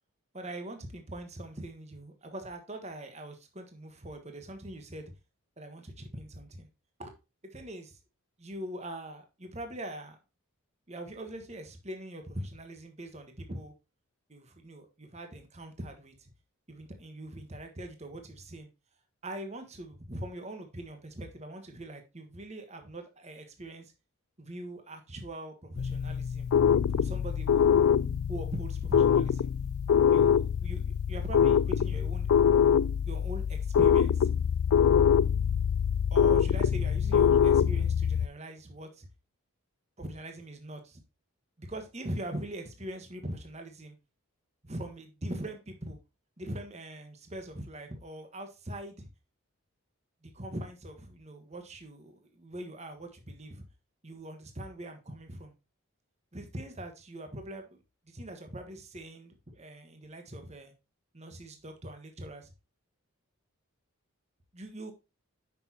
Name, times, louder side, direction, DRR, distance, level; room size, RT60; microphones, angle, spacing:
voice 1, 0.3-5.1 5.6-6.7 7.0-7.1 7.4-8.0 8.4-10.2 10.9-13.7 14.3-16.3 16.7-18.7 19.2-23.9 24.4-26.5 26.9-27.8 28.3-29.5 30.1-32.3 33.1-34.3 36.1-39.1 40.0-41.0 41.6-43.9 44.6-46.0 46.4-49.1 50.2-53.6 54.0-55.5 56.3-60.7 61.1-62.5 64.5-64.9, right 1 dB, 30° right, 5 dB, 1.4 m, -42 dB
sound 1, 25.8-38.3, left 8 dB, 70° left, 0.3 m, -24 dB
9.1 x 6.1 x 2.8 m, 0.26 s
head